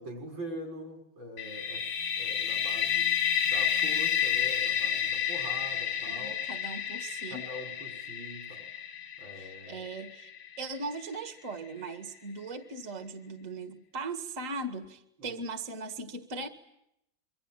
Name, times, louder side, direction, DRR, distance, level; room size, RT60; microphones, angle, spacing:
voice 1, 0.0-3.1 3.5-6.4 7.3-8.7 9.2-9.8 15.2-15.4, equal, 75° right, 3 dB, 7.1 m, -43 dB
sound 1, 1.4-11.1, left 8 dB, 80° left, 2.2 m, -31 dB
voice 2, 6.1-7.5 9.3-10.3 10.6-16.5, right 3 dB, 40° right, 6 dB, 2.2 m, -39 dB
26.5 x 24.5 x 9.0 m, 0.80 s
omnidirectional pair, 2.1 m